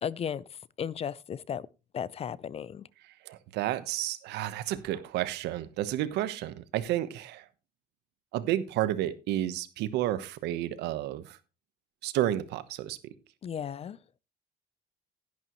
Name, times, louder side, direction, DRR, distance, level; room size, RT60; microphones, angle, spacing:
voice 1, 0.0-1.7 1.9-2.9 13.4-14.0, left 8 dB, 35° left, 0.5 m, -35 dB
voice 2, 3.3-7.4 8.3-11.4 12.0-13.0, right 13 dB, 85° right, 1.1 m, -31 dB
11.5 x 11.0 x 3.1 m
cardioid pair, 110°, 17 cm